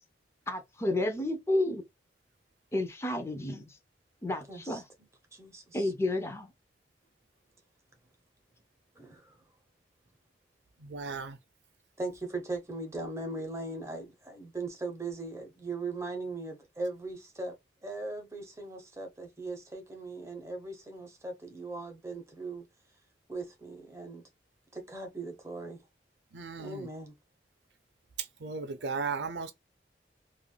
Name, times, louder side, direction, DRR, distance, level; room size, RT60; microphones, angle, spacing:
voice 1, 0.5-1.8 2.7-3.8 4.2-4.8 5.7-6.5, left 1 dB, 15° left, 0.5 m, -31 dB
voice 2, 4.5-4.8 5.3-5.9 9.0-9.4 12.0-17.6 17.8-22.7 23.3-24.2 24.7-25.8 26.6-27.1, right 3 dB, 15° right, 0.8 m, -39 dB
voice 3, 10.8-11.4 26.3-26.9 28.4-29.5, right 4 dB, 75° right, 0.5 m, -36 dB
3.2 x 2.4 x 2.3 m
head